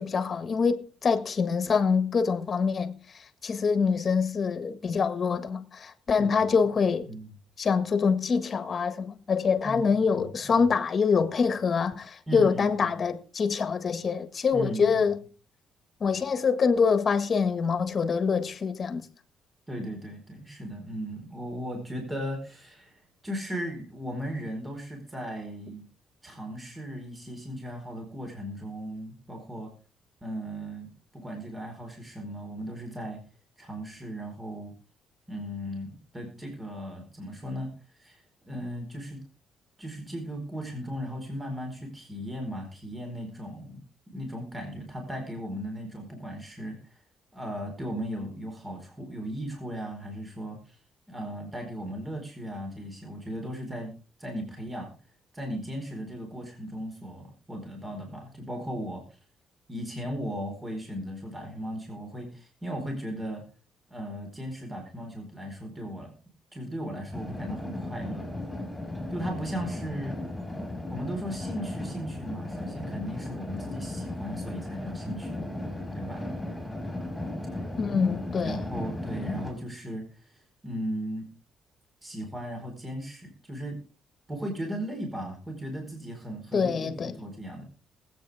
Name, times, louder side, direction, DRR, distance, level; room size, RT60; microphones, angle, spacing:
voice 1, 0.0-3.0 3.4-7.1 7.6-15.2 16.0-19.1 77.8-78.6 86.5-87.2, left 5 dB, 45° left, 1.6 m, -25 dB
voice 2, 9.6-10.7 12.3-12.9 14.5-15.1 19.7-25.8 26.2-29.7 30.2-30.9 31.1-33.2 33.6-34.7 35.3-37.7 38.0-39.2 39.8-43.8 44.1-46.8 47.3-50.6 51.1-53.9 54.2-54.9 55.3-59.0 59.7-63.4 63.9-66.1 66.5-68.3 69.1-70.1 70.9-75.4 75.9-76.2 78.4-80.0 80.6-81.3 82.0-83.8 84.3-87.6, equal, 20° right, 4.5 m, -37 dB
sound 1, 67.1-79.5, left 1 dB, 10° left, 4.9 m, -36 dB
20.5 x 8.7 x 3.5 m
cardioid pair, 90°, 0 cm